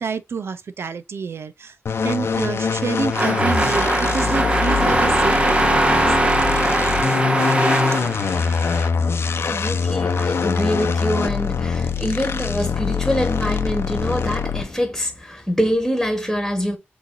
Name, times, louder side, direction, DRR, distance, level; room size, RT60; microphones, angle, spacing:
voice 1, 0.0-1.8 2.0-6.2, right 5 dB, 75° right, 0.6 m, -28 dB
sound 1, 1.9-14.8, left 5 dB, 80° left, 0.7 m, -23 dB
sound 2, 3.1-8.9, right 1 dB, 25° right, 1.0 m, -20 dB
voice 2, 9.2-16.8, equal, ahead, 1.8 m, -25 dB
6.2 x 3.2 x 2.6 m
cardioid pair, 70°, 4 cm